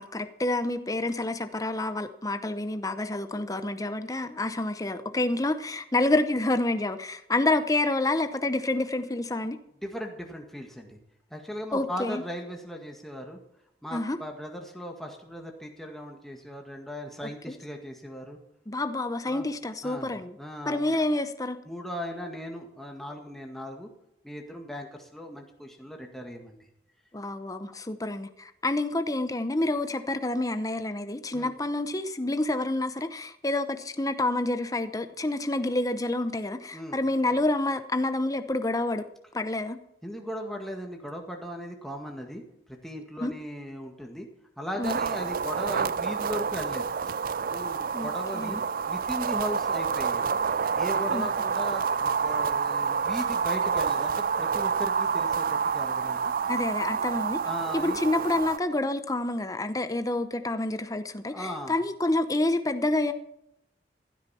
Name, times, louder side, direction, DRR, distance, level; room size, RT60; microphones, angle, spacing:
voice 1, 0.0-9.6 11.7-12.2 13.9-14.2 17.5-17.6 18.7-20.3 20.7-21.6 27.1-39.0 39.3-39.8 43.2-43.3 44.8-45.0 47.9-48.6 51.1-51.3 56.5-57.4 57.7-63.1, left 2 dB, 20° left, 9 dB, 0.8 m, -28 dB
voice 2, 9.8-11.0 11.3-13.4 13.8-18.4 19.2-19.5 19.8-20.1 20.4-21.0 21.6-23.9 24.2-26.6 31.3-31.5 36.7-37.0 40.0-42.4 42.8-44.3 44.6-46.9 47.5-50.4 50.8-56.3 56.9-58.0 61.3-61.7, equal, ahead, 1 dB, 1.8 m, -38 dB
sound 1, 44.8-58.6, right 6 dB, 50° right, 0.4 m, -28 dB
15.5 x 12.5 x 4.3 m, 0.81 s
head